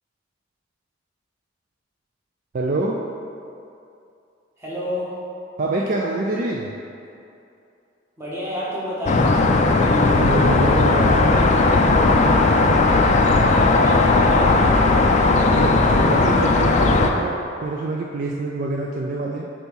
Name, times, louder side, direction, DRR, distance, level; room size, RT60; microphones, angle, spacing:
voice 1, 2.5-3.0 5.6-6.7 9.9-11.4 15.3-19.4, right 2 dB, 45° right, -1 dB, 0.4 m, -26 dB
voice 2, 4.6-5.1 8.2-9.3 13.6-14.5, left 1 dB, 15° right, -8 dB, 1.3 m, -29 dB
sound 1, 9.1-17.1, left 3 dB, 35° left, 0.4 m, -16 dB
4.5 x 4.4 x 5.3 m, 2.6 s
head